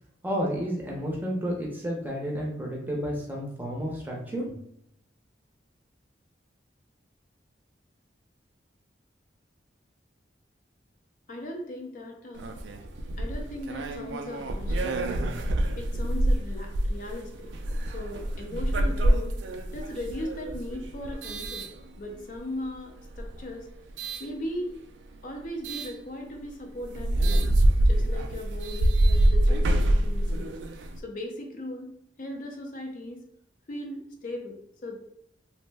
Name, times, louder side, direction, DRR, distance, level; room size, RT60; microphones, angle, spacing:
voice 1, 0.2-4.4, equal, 10° right, -2 dB, 0.6 m, -31 dB
voice 2, 11.3-12.4 13.2-15.2 15.7-17.5 17.9-19.4 19.7-21.7 22.0-23.7 24.2-24.7 25.2-27.5 27.8-30.5 31.0-33.2 33.7-35.0, left 1 dB, 45° left, 2 dB, 0.4 m, -38 dB
sound 1, 12.3-22.4 23.0-24.3 25.6-25.9 26.4-26.5 26.8-31.0, right 1 dB, 80° right, 0.3 m, -26 dB
3.0 x 2.0 x 3.3 m, 0.74 s
head